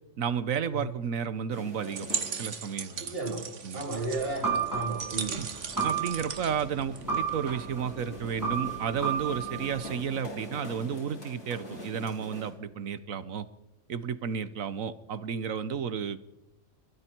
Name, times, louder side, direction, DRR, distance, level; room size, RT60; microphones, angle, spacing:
voice 1, 0.2-2.1 2.4-3.1 3.6-3.8 5.3-5.5 5.8-13.5 13.9-16.2, right 7 dB, 90° right, 14 dB, 1.5 m, -32 dB
sound 1, 1.5-12.5, left 1 dB, 65° left, 5.3 m, -45 dB
sound 2, 1.8-7.5, right 6 dB, 65° right, 1.6 m, -38 dB
voice 2, 3.0-3.5 3.7-5.4, right 3 dB, 45° right, -1 dB, 4.3 m, -33 dB
sound 3, 3.9-10.0, right 6 dB, 15° right, 3.7 m, -33 dB
29.5 x 21.5 x 4.6 m, 0.94 s
omnidirectional pair, 1.4 m